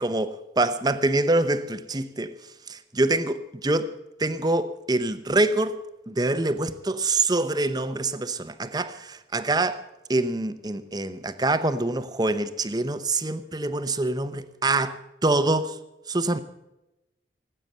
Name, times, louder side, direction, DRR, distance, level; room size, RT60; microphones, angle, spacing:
voice 1, 0.0-2.3 2.7-5.8 6.1-9.8 10.1-15.8 16.1-16.4, right 2 dB, 25° right, 0.8 m, -25 dB
18.0 x 8.8 x 7.8 m
head